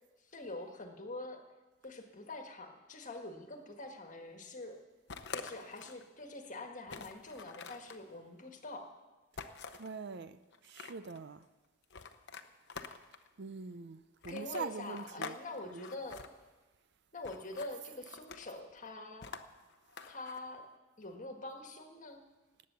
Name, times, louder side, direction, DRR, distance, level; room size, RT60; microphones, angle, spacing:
voice 1, 0.3-1.4 1.8-4.8 5.3-8.9 14.3-16.2 17.1-19.3 20.1-20.7 21.0-22.2, left 2 dB, 40° left, 1.6 m, -45 dB
sound 1, 5.1-6.0 6.4-6.5 6.9-8.0 9.4-9.9 10.5-11.2 11.9-13.3 14.2-15.4 15.7-16.3 17.2-17.7 18.1-18.6 19.2-20.4, left 5 dB, 55° left, 0.8 m, -46 dB
voice 2, 9.4-11.5 13.4-15.4 15.7-15.9, right 4 dB, 55° right, 0.6 m, -44 dB
19.0 x 8.5 x 6.9 m
head